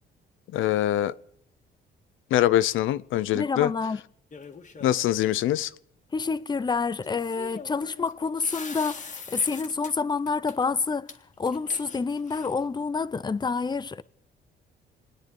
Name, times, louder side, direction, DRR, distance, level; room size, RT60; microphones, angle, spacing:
voice 1, 0.5-1.1 2.3-3.7 4.8-5.7, left 13 dB, 80° left, 0.6 m, -23 dB
voice 2, 3.3-4.0 6.1-11.1 11.4-14.0, left 4 dB, 20° left, 0.7 m, -28 dB
sound 1, 4.3-5.1 7.0-9.9 10.3-10.5 11.1-11.2 11.5-12.6, left 5 dB, 40° left, 1.9 m, -42 dB
27.0 x 9.9 x 5.4 m
cardioid pair, 90°, 20 cm